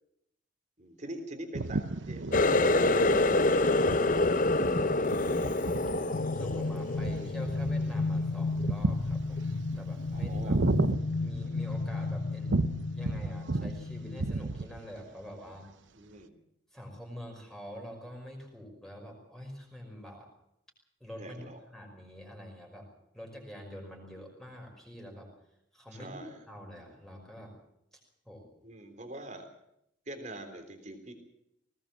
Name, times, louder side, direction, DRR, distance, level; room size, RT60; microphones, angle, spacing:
voice 1, 0.8-2.3 10.1-10.6 15.9-16.4 21.2-21.6 25.9-26.4 28.6-29.5 30.1-31.1, right 1 dB, 35° right, 6 dB, 3.6 m, -45 dB
sound 1, 1.5-11.9 12.5-13.8 14.1-14.9, right 3 dB, 75° right, 0.8 m, -34 dB
Water tap faucet, 2.3-7.8 8.2-8.7 9.1-9.4 10.1-10.2, left 2 dB, 40° left, 0.7 m, -26 dB
sound 2, 6.1-14.3, left 3 dB, 70° left, 1.1 m, -33 dB
voice 2, 6.3-9.4 9.7-10.6 11.2-12.6 12.9-15.7 16.7-20.3 21.0-22.9 23.1-25.3 25.7-26.2 26.5-27.6 28.3-28.5, equal, ahead, 0 dB, 5.5 m, -45 dB
20.0 x 19.0 x 7.5 m, 0.77 s
head